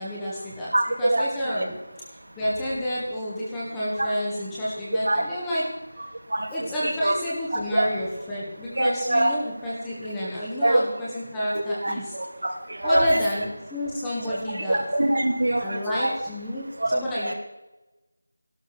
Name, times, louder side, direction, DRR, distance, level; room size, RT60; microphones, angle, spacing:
voice 1, 0.0-0.7 1.0-1.7 2.4-5.6 6.5-12.1 12.8-14.8 15.6-17.3, equal, 5° left, -7 dB, 1.8 m, -29 dB
voice 2, 0.7-1.2 4.0-4.1 5.1-5.2 6.3-7.1 7.7-7.8 8.8-9.3 10.6-10.8 11.8-13.2 14.7-16.1 16.8-17.3, right 1 dB, 85° right, 2 dB, 3.1 m, -24 dB
14.0 x 12.0 x 6.2 m, 1.0 s
figure-of-eight pair, 180°, 0 cm